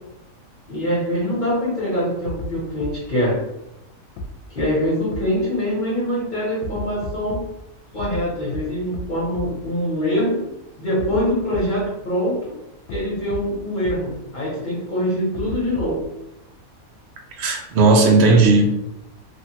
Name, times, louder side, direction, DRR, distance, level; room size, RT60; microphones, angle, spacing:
voice 1, 0.7-3.4 4.5-7.4 7.9-10.4 10.8-12.5 12.9-16.0, equal, 40° left, -7 dB, 0.9 m, -24 dB
sound 1, 2.3-2.5 2.8-2.9 4.2-4.3 4.6-4.7 5.1-5.2 6.6-7.4 8.0-8.2 8.5-8.6 8.9-9.0 9.3-9.4 11.0-11.2 11.5-11.6 12.9-13.0 13.3-13.4 13.8-13.9 15.3-16.0, equal, 75° left, 0.9 m, -31 dB
voice 2, 17.4-18.6, right 3 dB, 60° right, 1 dB, 0.8 m, -15 dB
3.1 x 2.3 x 2.8 m, 0.88 s
omnidirectional pair, 1.4 m